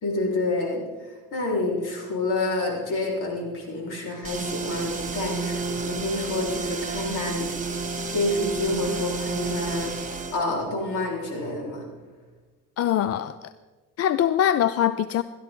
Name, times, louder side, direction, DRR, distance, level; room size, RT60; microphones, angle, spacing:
voice 1, 0.0-0.8 1.3-7.5 8.1-11.8, left 2 dB, 70° left, -2 dB, 4.3 m, -28 dB
sound 1, 4.2-10.4, right 4 dB, 25° right, 1.8 m, -31 dB
voice 2, 12.8-13.5 14.0-15.2, left 10 dB, 50° left, 14 dB, 0.5 m, -23 dB
17.0 x 12.0 x 3.8 m, 1.3 s
cardioid pair, 90°, 32 cm